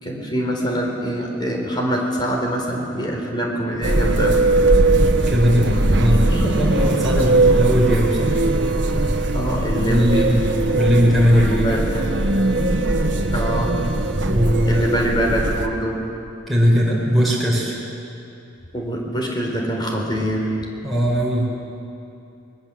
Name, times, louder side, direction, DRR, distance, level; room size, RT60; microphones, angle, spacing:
voice 1, 0.0-4.4 6.1-6.4 7.1-7.2 9.3-10.3 11.3-12.3 13.3-13.8 14.7-16.0 18.7-20.5, right 1 dB, 25° left, 0 dB, 4.0 m, -24 dB
sound 1, 3.8-15.7, right 2 dB, 70° right, 1.5 m, -19 dB
voice 2, 5.3-8.4 9.8-11.8 14.2-14.9 16.5-17.8 20.8-21.6, equal, ahead, -5 dB, 4.5 m, -19 dB
24.5 x 21.5 x 7.5 m, 2.7 s
head